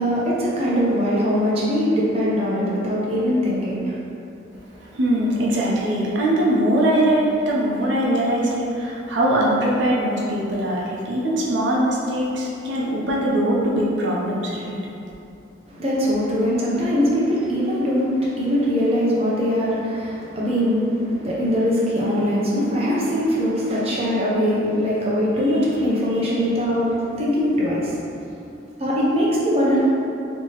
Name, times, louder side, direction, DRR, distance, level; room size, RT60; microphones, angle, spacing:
voice 1, 0.0-3.9 15.7-28.0 28.8-29.8, equal, 35° right, -7 dB, 0.6 m, -21 dB
voice 2, 4.8-14.8, right 1 dB, 75° right, -4 dB, 0.6 m, -21 dB
4.4 x 2.8 x 2.9 m, 2.7 s
head